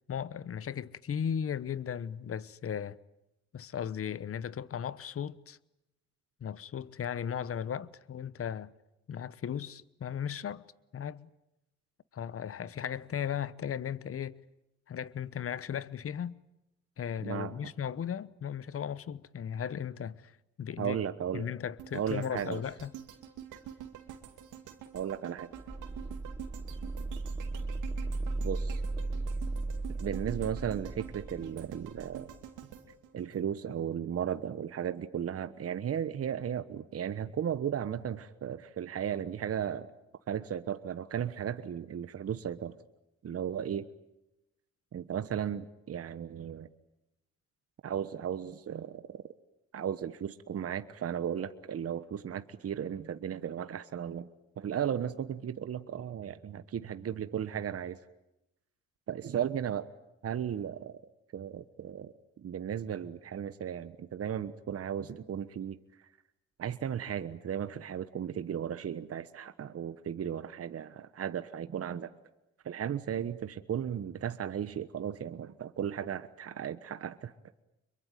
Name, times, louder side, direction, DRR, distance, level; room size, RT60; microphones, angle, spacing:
voice 1, 0.1-3.0 3.5-5.6 6.4-8.7 9.1-10.6 10.9-11.3 12.1-14.3 14.9-16.4 17.0-21.0 21.3-22.9, left 8 dB, 50° left, 1.1 m, -36 dB
voice 2, 17.2-17.5 20.8-21.5 21.9-22.6 24.9-25.5 28.4-28.8 30.0-32.3 33.1-39.9 40.3-42.8 43.2-43.9 44.9-46.7 47.8-49.2 49.7-54.3 54.6-58.0 59.1-59.9 60.2-61.0 61.3-66.1 66.6-72.1 72.6-77.3, right 9 dB, 50° right, 1.3 m, -35 dB
sound 1, 21.8-34.0 34.4-34.5, right 10 dB, 90° right, 2.6 m, -47 dB
sound 2, 25.5-32.2, right 3 dB, 10° right, 1.3 m, -36 dB
26.0 x 23.0 x 9.2 m
supercardioid pair, 70°, 30 cm